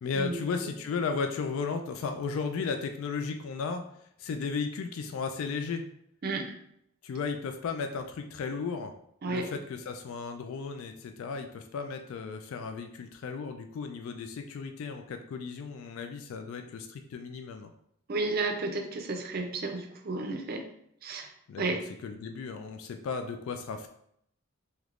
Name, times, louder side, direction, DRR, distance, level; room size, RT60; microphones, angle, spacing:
voice 1, 0.0-3.8 4.2-5.8 7.0-8.9 9.3-17.7 21.5-23.9, left 5 dB, 70° left, 6 dB, 0.3 m, -35 dB
voice 2, 6.2-6.6 9.2-9.5 18.1-20.7 21.0-21.3 21.6-21.8, right 3 dB, 45° right, 4 dB, 0.5 m, -32 dB
3.3 x 2.9 x 2.4 m, 0.72 s
head